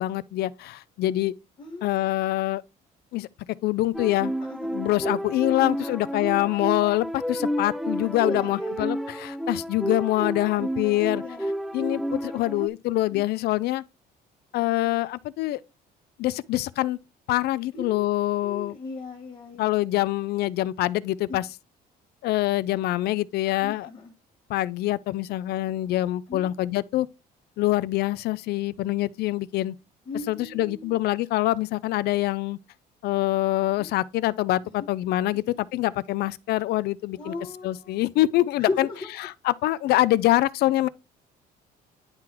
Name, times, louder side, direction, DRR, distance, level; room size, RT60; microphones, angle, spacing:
voice 1, 0.0-1.4 1.8-2.6 3.1-3.3 3.6-4.3 4.6-11.2 11.7-13.8 14.5-15.6 16.2-17.0 17.3-18.8 19.6-21.5 22.2-23.9 24.5-27.1 27.6-29.8 30.3-32.6 33.0-37.3 37.6-38.9 39.2-40.9, left 16 dB, 70° left, 0.4 m, -25 dB
voice 2, 1.6-1.9 4.5-4.6 5.8-5.9 8.2-8.8 11.2-11.5 13.1-13.2 17.7-18.0 18.4-19.7 21.3-21.4 23.5-24.1 26.3-26.4 30.1-30.9 33.8-33.9 37.2-38.0 38.6-39.1, left 3 dB, 35° left, 1.6 m, -36 dB
sound 1, 3.9-12.7, equal, ahead, 0.4 m, -31 dB
10.5 x 3.8 x 2.9 m
cardioid pair, 110°, 17 cm